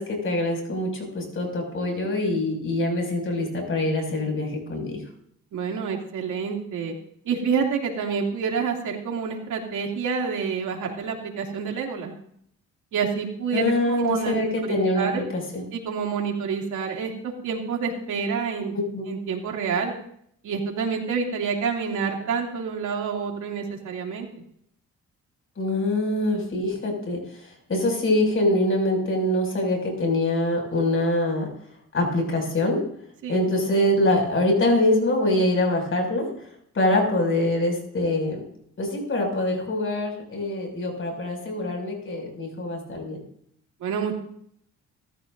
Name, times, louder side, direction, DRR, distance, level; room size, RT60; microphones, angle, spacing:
voice 1, 0.0-5.0 13.5-15.7 18.9-19.0 25.6-31.5 31.9-32.8 33.3-36.3 36.7-38.4 38.8-43.2, left 1 dB, 45° left, 2 dB, 6.5 m, -24 dB
voice 2, 5.5-6.9 7.2-12.1 12.9-15.2 15.7-18.8 19.1-19.9 20.4-24.3 33.2-33.4 43.8-44.1, right 6 dB, 75° right, 1 dB, 2.9 m, -28 dB
23.5 x 14.0 x 2.7 m, 0.66 s
cardioid pair, 90°, 30 cm